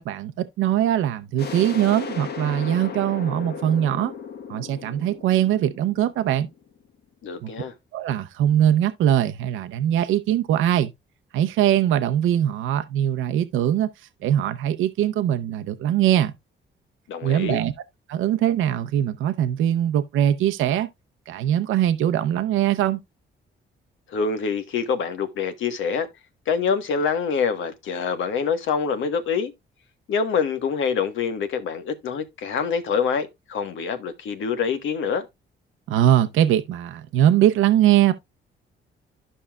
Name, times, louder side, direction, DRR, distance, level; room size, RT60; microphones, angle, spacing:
voice 1, 0.0-4.1 4.5-6.5 7.4-7.5 7.9-10.9 11.3-13.9 14.2-16.3 17.2-17.7 18.1-20.9 21.3-23.0 35.9-38.1, right 11 dB, 85° right, 0.7 m, -21 dB
sound 1, 1.4-6.9, left 6 dB, 55° left, 1.2 m, -36 dB
voice 2, 7.2-7.7 17.1-17.6 24.1-26.1 26.5-29.5 30.1-35.2, left 6 dB, 75° left, 1.4 m, -25 dB
12.5 x 5.5 x 2.3 m
cardioid pair, 90°, 20 cm